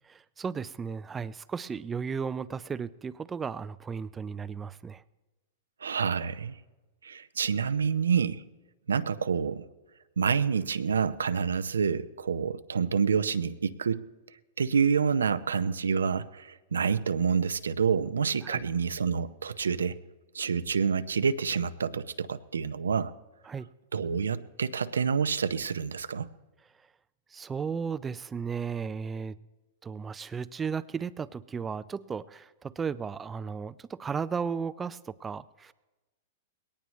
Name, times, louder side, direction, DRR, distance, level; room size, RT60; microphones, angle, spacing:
voice 1, 0.0-5.0 18.4-18.6 23.5-23.7 27.3-29.4 29.8-35.7, right 6 dB, 20° right, 14 dB, 0.4 m, -35 dB
voice 2, 5.8-6.6 7.0-8.4 8.9-9.7 10.2-14.0 14.6-20.0 20.3-23.1 23.9-26.3, right 6 dB, 85° right, 12 dB, 0.6 m, -28 dB
20.5 x 18.0 x 3.2 m, 1.1 s
hypercardioid pair, 110°, 0 cm